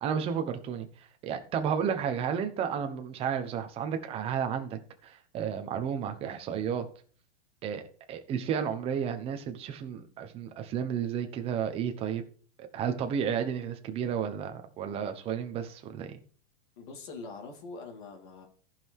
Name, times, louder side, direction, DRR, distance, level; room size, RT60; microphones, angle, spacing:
voice 1, 0.0-0.9 1.2-6.9 7.6-7.8 8.1-12.2 12.6-16.2, right 8 dB, 15° right, 1.0 m, -32 dB
voice 2, 16.8-18.5, left 3 dB, 45° left, 2.7 m, -43 dB
14.5 x 5.9 x 4.7 m
supercardioid pair, 170°, 34 cm